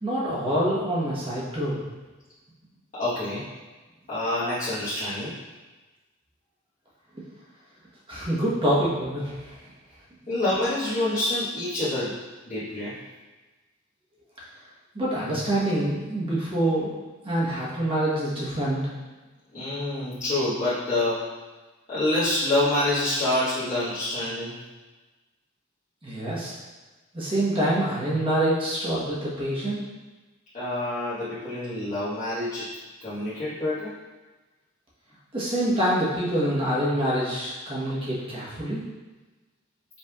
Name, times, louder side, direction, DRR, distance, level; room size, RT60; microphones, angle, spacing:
voice 1, 0.0-1.8 8.1-9.5 14.9-17.0 17.2-18.8 26.0-26.5 27.1-29.8 35.3-38.8, right 1 dB, 25° right, -7 dB, 1.1 m, -26 dB
voice 2, 2.9-3.5 4.1-5.3 10.3-12.1 12.5-12.9 19.5-21.2 21.9-24.5 30.5-32.7 33.0-33.9, left 1 dB, 40° left, -15 dB, 1.2 m, -27 dB
5.3 x 3.3 x 2.3 m, 1.2 s
head